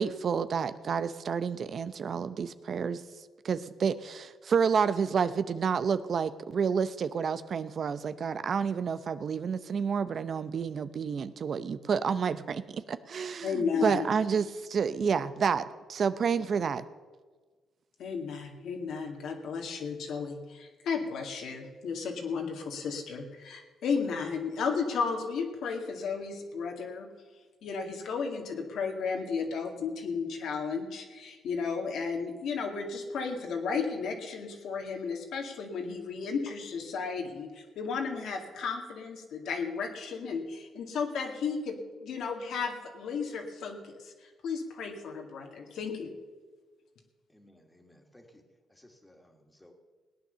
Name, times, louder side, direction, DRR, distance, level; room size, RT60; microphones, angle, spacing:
voice 1, 0.0-3.0 3.4-16.8, right 6 dB, 50° right, 13 dB, 0.6 m, -29 dB
voice 2, 13.4-14.1 18.0-27.1 27.6-46.1, left 5 dB, 75° left, 3 dB, 2.1 m, -34 dB
voice 3, 47.3-48.4 48.7-49.7, left 1 dB, 10° left, 4 dB, 2.2 m, -58 dB
17.5 x 9.3 x 6.8 m, 1.4 s
cardioid pair, 90°, 0 cm